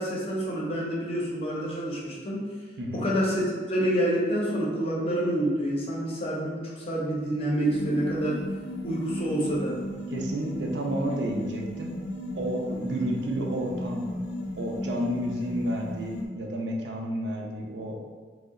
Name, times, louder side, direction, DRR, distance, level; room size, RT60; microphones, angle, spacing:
voice 1, 0.0-2.5 2.9-8.4 8.8-9.7, right 1 dB, 35° left, -4 dB, 0.6 m, -27 dB
voice 2, 2.8-3.1 10.1-11.9 12.4-14.1 14.6-18.0, right 1 dB, 80° right, 0 dB, 0.5 m, -31 dB
sound 1, 7.6-16.3, left 1 dB, 80° left, 0.5 m, -35 dB
2.7 x 2.0 x 3.6 m, 1.5 s
head